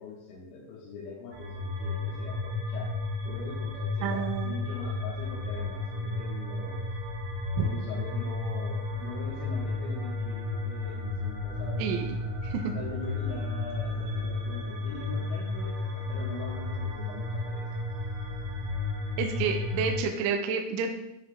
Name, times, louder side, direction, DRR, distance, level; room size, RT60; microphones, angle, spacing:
voice 1, 0.0-2.9 3.3-6.9 7.6-11.9 12.7-17.6, left 4 dB, 80° left, -7 dB, 3.8 m, -42 dB
sound 1, 1.3-20.0, left 3 dB, 65° right, 2.0 m, -33 dB
voice 2, 4.0-4.6 7.6-7.7 11.8-12.2 12.4-12.7 19.2-21.0, right 6 dB, 85° right, 3 dB, 3.1 m, -29 dB
12.0 x 6.7 x 2.5 m, 0.84 s
omnidirectional pair, 5.7 m